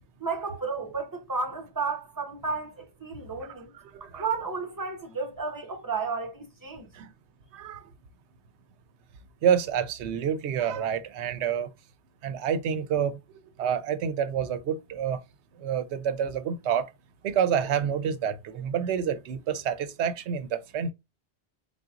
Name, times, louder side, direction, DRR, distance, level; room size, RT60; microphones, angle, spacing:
voice 1, 0.2-3.7 4.2-6.9, right 4 dB, 20° right, 0.8 m, -32 dB
voice 2, 3.9-4.3 6.9-7.1 7.5-7.9 9.4-11.7 12.2-13.2 13.6-15.2 15.6-16.9 17.2-20.9, right 8 dB, 85° right, 0.9 m, -28 dB
3.9 x 3.7 x 2.4 m
omnidirectional pair, 1.1 m